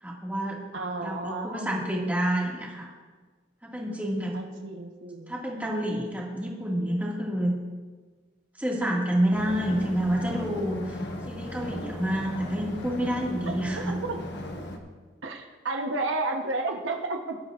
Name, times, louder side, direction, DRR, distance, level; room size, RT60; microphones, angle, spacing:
voice 1, 0.0-0.6 1.0-2.9 3.6-4.4 5.3-7.6 8.6-11.0 11.3-14.0, equal, 10° right, -3 dB, 1.9 m, -28 dB
voice 2, 0.7-1.7 4.3-5.4 13.5-13.6 13.9-14.2 15.2-17.4, right 2 dB, 75° right, 3 dB, 1.0 m, -32 dB
sound 1, 9.3-14.8, left 1 dB, 60° left, 1.2 m, -37 dB
18.5 x 11.5 x 2.4 m, 1.4 s
head